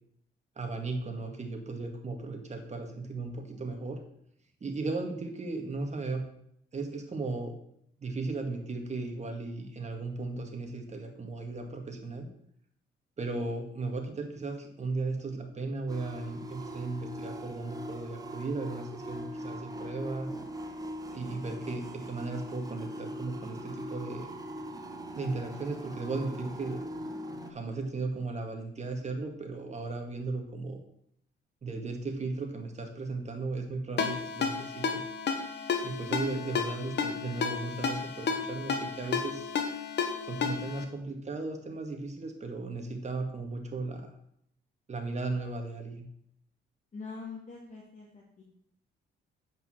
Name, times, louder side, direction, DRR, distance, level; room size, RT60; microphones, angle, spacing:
voice 1, 0.6-4.0 4.6-6.2 6.7-7.6 8.0-12.3 13.2-20.3 21.1-24.3 25.1-26.8 27.5-30.8 31.6-35.0 35.8-39.5 40.2-44.1 44.9-46.1, right 3 dB, 35° right, 4 dB, 2.0 m, -36 dB
sound 1, 15.9-27.5, equal, 20° right, 1.2 m, -41 dB
Ringtone, 34.0-40.8, left 6 dB, 60° left, 1.4 m, -32 dB
voice 2, 46.9-48.4, left 4 dB, 40° left, -3 dB, 2.2 m, -44 dB
8.6 x 5.4 x 6.2 m, 0.71 s
cardioid pair, 90°, 20 cm